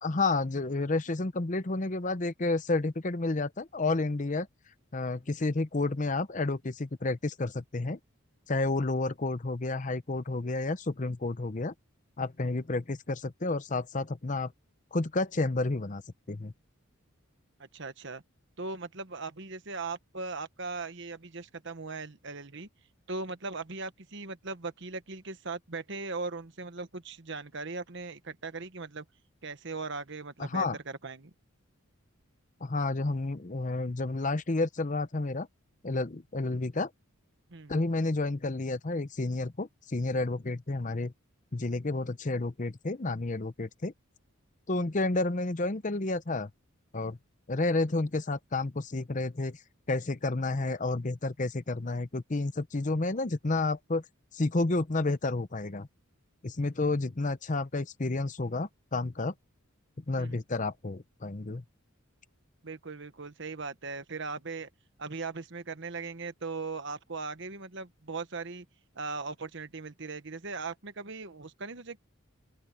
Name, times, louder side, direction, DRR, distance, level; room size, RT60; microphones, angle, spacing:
voice 1, 0.0-4.5 4.9-8.0 8.5-11.7 12.2-14.5 14.9-16.0 16.3-16.5 30.4-30.8 32.6-35.5 35.8-36.9 37.7-41.1 41.5-43.9 44.7-46.5 46.9-47.2 47.5-49.6 49.9-54.0 54.3-55.9 56.4-59.3 60.1-61.6, left 2 dB, 35° left, 0.7 m, -30 dB
voice 2, 17.6-18.2 18.6-22.7 23.1-29.0 29.4-31.3 37.5-37.7 60.2-60.4 62.6-64.7 65.0-68.6 68.9-72.0, right 3 dB, 55° right, 1.2 m, -39 dB
open air
head